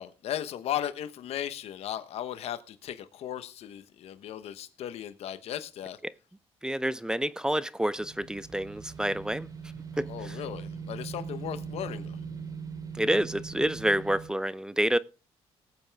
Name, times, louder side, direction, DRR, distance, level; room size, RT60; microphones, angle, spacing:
voice 1, 0.0-6.0 10.1-12.2, left 11 dB, 75° left, 1.1 m, -36 dB
voice 2, 6.6-9.5 10.0-10.4 13.0-15.0, right 1 dB, 5° right, 0.6 m, -28 dB
sound 1, 8.0-14.3, right 6 dB, 35° right, 3.4 m, -40 dB
19.0 x 7.9 x 3.5 m
cardioid pair, 85°, 11 cm